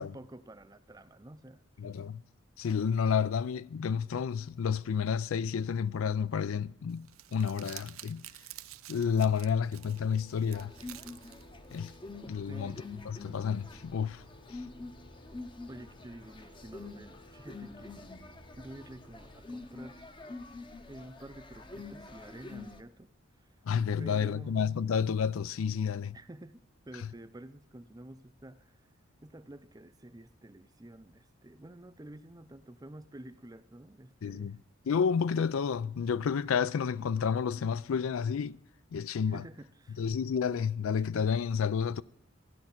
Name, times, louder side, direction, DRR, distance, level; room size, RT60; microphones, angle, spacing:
voice 1, 0.0-2.0 12.5-12.8 15.7-18.1 18.6-20.1 20.9-23.1 23.4-23.5 24.0-24.8 26.1-28.9 29.2-34.6 39.3-40.0, right 1 dB, 20° right, 0.5 m, -49 dB
voice 2, 1.8-2.2 2.6-8.2 8.9-10.7 11.7-11.9 12.3-12.8 13.1-14.2 14.5-14.6 23.6-26.2 34.2-34.6 34.9-38.6 38.9-39.4 40.0-42.0, left 6 dB, 80° left, 0.4 m, -30 dB
Crumpling crinkling, 6.9-12.0, right 15 dB, 80° right, 0.5 m, -50 dB
sound 1, 9.3-19.4, left 1 dB, 40° left, 1.2 m, -57 dB
sound 2, 10.5-22.8, left 3 dB, 25° left, 0.7 m, -47 dB
14.5 x 10.5 x 5.9 m
head